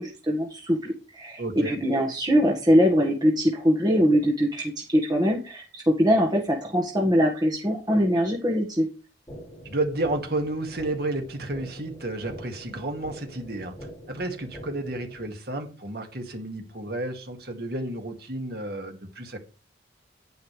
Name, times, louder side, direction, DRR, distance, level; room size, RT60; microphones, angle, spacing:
voice 1, 0.0-8.9, equal, 20° right, 1.7 m, -22 dB
voice 2, 1.4-1.8 9.6-13.7 14.1-19.4, right 2 dB, 55° right, 2.1 m, -31 dB
sound 1, 9.3-15.3, equal, 20° left, 5.0 m, -44 dB
10.0 x 9.7 x 3.4 m
head